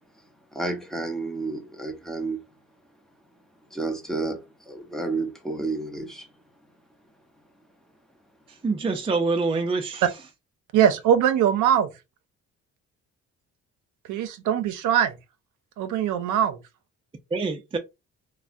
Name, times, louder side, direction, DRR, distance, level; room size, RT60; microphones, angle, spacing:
voice 1, 0.5-2.4 3.7-6.3, right 3 dB, ahead, 0.8 m, -31 dB
voice 2, 8.6-10.1 17.3-17.8, right 4 dB, 20° right, 0.4 m, -25 dB
voice 3, 10.7-11.9 14.1-15.1 15.8-16.6, right 9 dB, 80° right, 0.5 m, -21 dB
3.3 x 2.1 x 2.5 m
cardioid pair, 90°, 30 cm